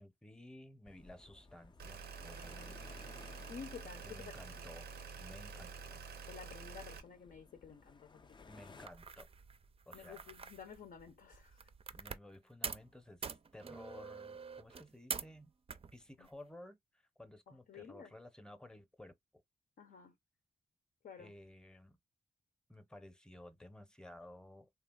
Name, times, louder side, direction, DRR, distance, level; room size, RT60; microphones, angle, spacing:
voice 1, 0.0-3.0 4.0-4.9 5.2-6.0 8.5-9.3 9.9-10.3 11.9-15.5 15.9-16.8 17.2-19.1 21.2-22.0 22.7-24.7, left 1 dB, 5° left, 0.7 m, -55 dB
sound 1, 0.8-8.9, left 4 dB, 30° left, 0.4 m, -59 dB
sound 2, 1.8-7.0, right 5 dB, 90° right, 0.6 m, -48 dB
voice 2, 3.5-4.2 4.5-4.7 6.3-8.5 9.9-11.7 16.2-16.3 17.5-18.1 19.8-20.2 21.0-21.3, left 6 dB, 70° left, 0.6 m, -52 dB
sound 3, 8.9-12.4 12.6-12.9 13.2-15.4 15.7-16.3, right 5 dB, 35° right, 0.4 m, -46 dB
3.2 x 2.4 x 2.3 m
cardioid pair, 55°, 16 cm